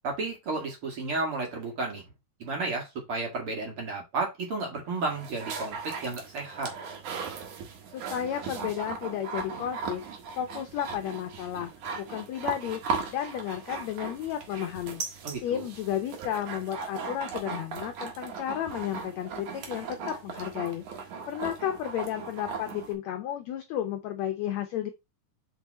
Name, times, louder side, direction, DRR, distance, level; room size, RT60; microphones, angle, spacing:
voice 1, 0.0-2.0 2.4-6.7 15.2-15.7, right 3 dB, 45° right, 2.5 m, -32 dB
sound 1, 4.9-22.9, right 5 dB, 65° right, 2.8 m, -38 dB
voice 2, 7.9-10.0 10.4-12.8 13.1-15.0 15.4-24.9, left 10 dB, 75° left, 1.6 m, -33 dB
6.1 x 4.9 x 4.2 m
omnidirectional pair, 3.9 m